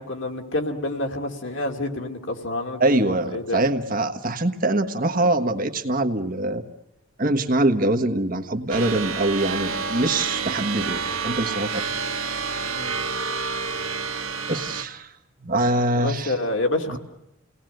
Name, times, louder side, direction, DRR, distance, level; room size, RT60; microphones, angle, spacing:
voice 1, 0.0-3.0 3.3-3.6 12.7-12.9 15.9-17.0, left 1 dB, 65° left, 4 dB, 2.5 m, -28 dB
voice 2, 2.8-6.6 7.2-11.8 14.5-15.1 15.4-16.4, right 2 dB, 45° right, 6 dB, 1.4 m, -23 dB
sound 1, 8.7-14.8, right 5 dB, 90° right, 1.8 m, -28 dB
29.5 x 18.5 x 7.9 m, 0.83 s
head